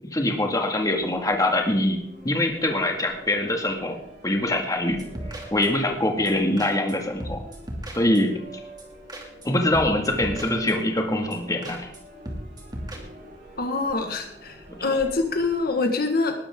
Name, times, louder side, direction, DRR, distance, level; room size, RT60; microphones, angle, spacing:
voice 1, 0.1-2.0 2.2-4.0 4.2-5.0 5.5-7.4 7.9-8.3 9.4-11.9, left 1 dB, 20° left, 2 dB, 2.1 m, -23 dB
sound 1, 0.7-15.8, right 1 dB, 60° right, 7.8 m, -46 dB
sound 2, 4.9-5.9 6.3-6.4 6.6-6.9 7.2-8.4 8.8-8.9 9.1-9.5 9.7-11.0 11.3-11.4 11.6-12.0 12.3-13.0, right 1 dB, 25° right, 2.6 m, -37 dB
voice 2, 13.6-16.3, left 3 dB, 55° left, 5 dB, 1.6 m, -25 dB
20.0 x 12.0 x 3.8 m, 0.71 s
head